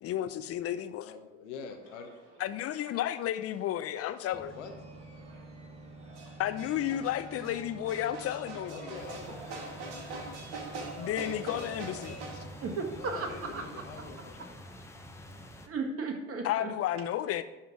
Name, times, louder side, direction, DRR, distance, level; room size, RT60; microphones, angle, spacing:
voice 1, 0.0-1.1 2.4-4.6 6.4-8.9 11.0-12.4 16.4-17.4, left 11 dB, 40° left, 12 dB, 0.7 m, -32 dB
voice 2, 1.0-2.2 4.5-4.7 8.7-9.8 12.9-14.5, left 5 dB, 75° left, 4 dB, 1.1 m, -45 dB
sound 1, 1.8-12.4, right 3 dB, 75° right, 1.4 m, -45 dB
sound 2, 4.3-14.1, right 2 dB, 15° right, 1.5 m, -49 dB
sound 3, 8.9-15.7, left 1 dB, 10° left, 1.1 m, -48 dB
voice 3, 12.6-13.6 15.7-16.7, right 4 dB, 40° right, 3 dB, 1.8 m, -35 dB
11.0 x 3.7 x 6.0 m, 1.1 s
hypercardioid pair, 70°, 35 cm